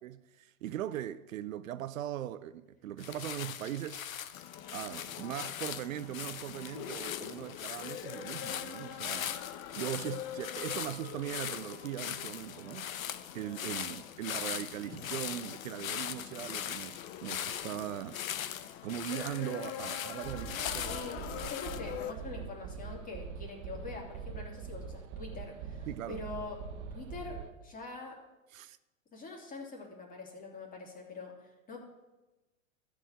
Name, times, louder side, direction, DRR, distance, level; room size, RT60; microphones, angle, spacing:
voice 1, 0.0-4.1 4.7-9.3 9.7-12.9 13.3-18.5 18.8-21.0 25.9-26.2 28.5-28.8, right 12 dB, 75° right, 0.6 m, -40 dB
sound 1, 3.0-21.8, left 10 dB, 80° left, 0.8 m, -40 dB
sound 2, 4.3-22.1, left 10 dB, 45° left, 0.9 m, -45 dB
sound 3, 20.2-27.5, right 6 dB, 40° right, 0.8 m, -43 dB
voice 2, 20.8-21.2 21.5-26.6 26.9-28.1 29.1-31.8, left 3 dB, 20° left, 2.9 m, -44 dB
13.0 x 5.0 x 7.9 m
hypercardioid pair, 110°, 41 cm